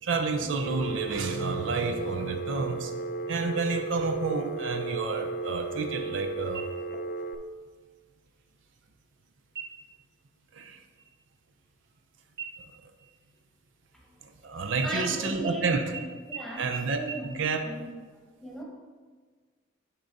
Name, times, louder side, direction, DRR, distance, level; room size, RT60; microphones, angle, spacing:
voice 1, 0.0-3.0 3.3-6.6 10.5-10.8 14.4-15.8 16.6-17.6, right 4 dB, 70° right, 5 dB, 0.6 m, -30 dB
Telephone, 0.6-7.3, right 3 dB, 50° left, 0.4 m, -35 dB
sound 1, 6.5-7.2 7.6-7.7 8.3-8.8 9.5-10.0 10.4-10.7 10.9-12.1 12.4-14.4 14.8-15.5 15.9-16.0 16.3-16.4 16.7-16.8 17.1-17.2, right 7 dB, 55° right, 1.0 m, -42 dB
voice 2, 14.4-16.7 17.0-17.9 18.4-18.6, right 1 dB, ahead, -2 dB, 1.1 m, -38 dB
9.9 x 3.8 x 4.1 m, 1.5 s
head